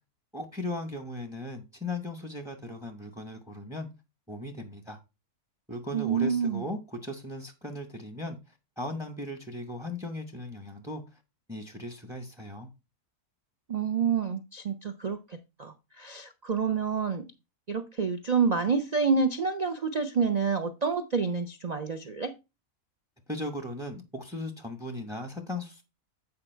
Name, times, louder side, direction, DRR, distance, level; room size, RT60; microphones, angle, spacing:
voice 1, 0.3-3.9 4.3-5.0 5.7-8.4 8.8-11.0 11.5-12.7 23.3-25.8, left 1 dB, 5° right, 0.6 m, -37 dB
voice 2, 5.9-6.6 13.7-17.3 17.7-22.3, right 5 dB, 80° right, 0.3 m, -28 dB
8.7 x 4.7 x 4.4 m
omnidirectional pair, 1.6 m